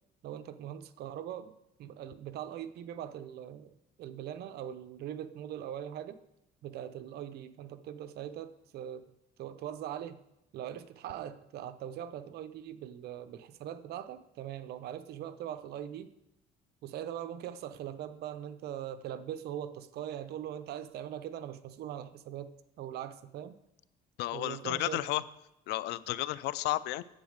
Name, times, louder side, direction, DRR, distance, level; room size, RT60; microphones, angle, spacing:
voice 1, 0.2-1.5 1.8-3.7 4.0-6.2 6.6-9.0 9.4-10.2 10.5-16.1 16.8-22.5 22.8-23.6 24.3-25.2, right 10 dB, 70° right, 11 dB, 0.8 m, -41 dB
voice 2, 24.2-25.2 25.7-27.0, left 16 dB, 85° left, 18 dB, 0.5 m, -32 dB
10.0 x 8.1 x 6.5 m, 0.85 s
cardioid pair, 110°, 17 cm